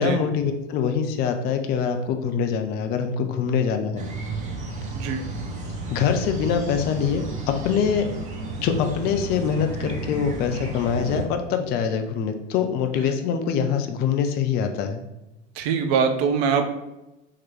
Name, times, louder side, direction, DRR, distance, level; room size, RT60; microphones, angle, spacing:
voice 1, 0.0-4.0 5.9-8.1 8.6-15.0, left 7 dB, 30° left, 6 dB, 0.4 m, -24 dB
sound 1, 4.0-11.2, right 2 dB, 20° right, 0.9 m, -32 dB
voice 2, 4.9-5.3 15.6-16.7, right 6 dB, 55° right, 6 dB, 0.7 m, -22 dB
3.8 x 3.1 x 4.4 m, 0.96 s
figure-of-eight pair, 80°, 37 cm